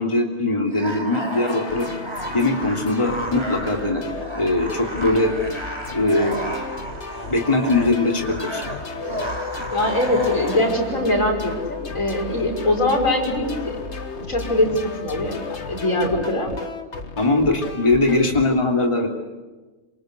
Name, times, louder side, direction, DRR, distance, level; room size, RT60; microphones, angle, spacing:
voice 1, 0.0-1.9 2.3-4.0 4.3-5.3 5.9-6.3 7.3-8.6 17.2-19.1, left 2 dB, 20° left, 2 dB, 3.0 m, -21 dB
sound 1, 0.6-10.8, right 1 dB, 20° right, 4.1 m, -32 dB
sound 2, 1.5-18.4, left 4 dB, 60° left, 2.0 m, -34 dB
voice 2, 9.7-13.8 14.3-15.4 15.7-16.5, left 1 dB, 85° left, 1 dB, 6.2 m, -22 dB
27.5 x 26.0 x 8.1 m, 1.2 s
omnidirectional pair, 1.3 m